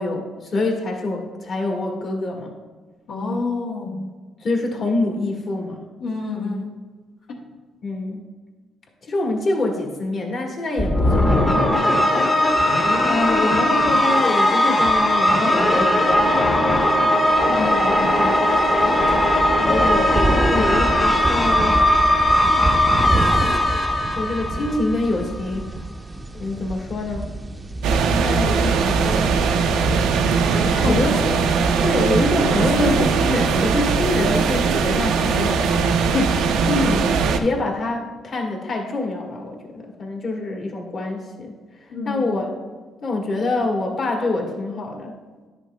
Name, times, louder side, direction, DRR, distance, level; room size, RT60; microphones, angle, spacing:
voice 1, 0.0-2.5 4.4-5.8 7.8-8.2 9.0-17.1 19.6-21.9 24.1-25.7 26.3-27.3 28.1-29.4 30.9-31.1 31.8-35.6 36.0-37.1 37.4-41.5 41.8-42.5 43.0-45.2, left 2 dB, 55° left, 0 dB, 1.4 m, -26 dB
voice 2, 3.1-4.0 6.0-6.8 7.3-7.4 17.5-18.3 30.6-31.2 41.9-42.2, left 3 dB, 80° left, -3 dB, 0.8 m, -28 dB
sound 1, 10.8-25.2, left 1 dB, 25° left, 0.7 m, -18 dB
sound 2, 18.4-31.1, right 2 dB, 20° right, 0.5 m, -28 dB
sound 3, 27.8-37.4, right 5 dB, 90° right, 0.4 m, -20 dB
10.5 x 6.1 x 2.2 m, 1.3 s
cardioid pair, 90°, 0 cm